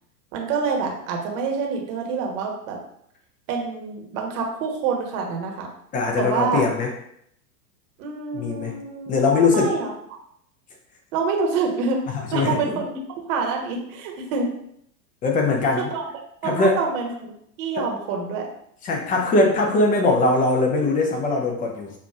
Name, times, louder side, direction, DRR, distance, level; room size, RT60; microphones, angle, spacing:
voice 1, 0.3-2.8 3.5-5.7 6.2-6.6 8.0-10.2 11.1-12.0 12.3-14.5 15.9-16.0 16.4-17.3 17.6-18.5, right 5 dB, 50° right, 1 dB, 1.1 m, -27 dB
voice 2, 5.9-6.9 8.3-8.8 9.1-9.7 12.1-12.7 15.2-15.9 16.4-16.8 17.8-17.9 18.8-21.9, left 3 dB, 15° left, 1 dB, 0.5 m, -21 dB
5.6 x 2.4 x 2.4 m, 0.72 s
hypercardioid pair, 105°, 50 cm